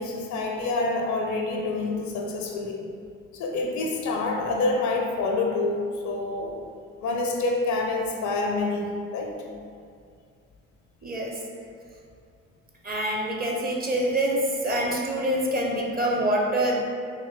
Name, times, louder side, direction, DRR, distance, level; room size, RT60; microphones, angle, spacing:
voice 1, 0.0-2.9 3.3-6.6 7.0-9.3, left 3 dB, 50° left, 1 dB, 0.5 m, -27 dB
voice 2, 11.0-11.4 12.8-16.8, right 1 dB, 25° right, -2 dB, 0.7 m, -25 dB
3.7 x 3.1 x 2.3 m, 2.3 s
figure-of-eight pair, 50°, 38 cm